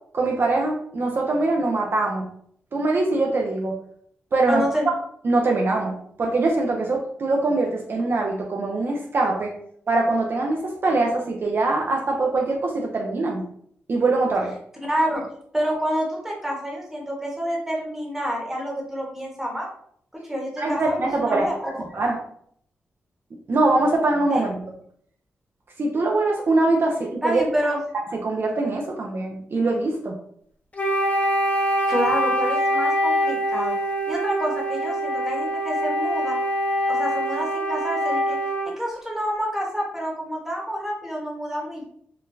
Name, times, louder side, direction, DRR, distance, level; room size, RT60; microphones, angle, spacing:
voice 1, 0.1-2.3 2.7-3.8 4.3-4.6 5.2-9.5 9.9-13.4 13.9-14.5 20.6-21.5 21.9-22.2 23.5-24.6 25.8-27.4 28.2-30.2, right 2 dB, 55° right, 1 dB, 0.5 m, -23 dB
voice 2, 4.5-4.8 14.9-15.3 15.5-19.7 20.1-21.8 24.3-24.5 27.2-27.8 31.9-33.7 34.1-36.4 36.9-38.4 38.6-41.8, equal, 5° right, -2 dB, 1.1 m, -28 dB
Wind instrument woodwind instrument, 30.7-38.8, equal, 30° left, 0.5 m, -24 dB
3.8 x 2.2 x 2.5 m, 0.66 s
cardioid pair, 65°, 5 cm